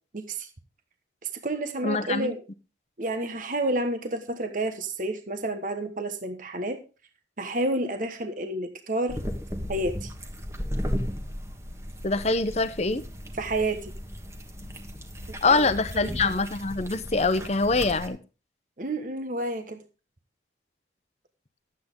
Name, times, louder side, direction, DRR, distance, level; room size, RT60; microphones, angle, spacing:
voice 1, 0.1-0.5 1.3-2.4 3.0-6.8 7.4-9.2 9.7-10.1 13.4-13.9 15.4-15.7 15.9-16.1 18.8-19.8, right 1 dB, 45° right, 8 dB, 1.2 m, -30 dB
voice 2, 1.8-2.3 12.0-13.0 15.4-18.2, left 3 dB, 35° left, 12 dB, 0.8 m, -24 dB
sound 1, 9.1-18.1, equal, 15° right, 1.4 m, -35 dB
12.0 x 8.5 x 3.7 m, 0.32 s
head